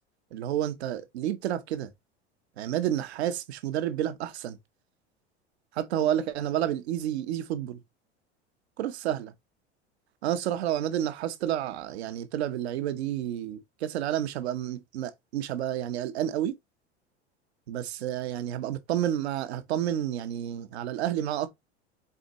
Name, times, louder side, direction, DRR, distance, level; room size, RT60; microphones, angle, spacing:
voice 1, 0.3-1.9 2.6-4.6 5.7-7.8 8.8-9.3 10.2-16.6 17.7-21.5, right 11 dB, 65° right, 1.1 m, -30 dB
7.2 x 4.4 x 3.0 m
figure-of-eight pair, 75°, 35 cm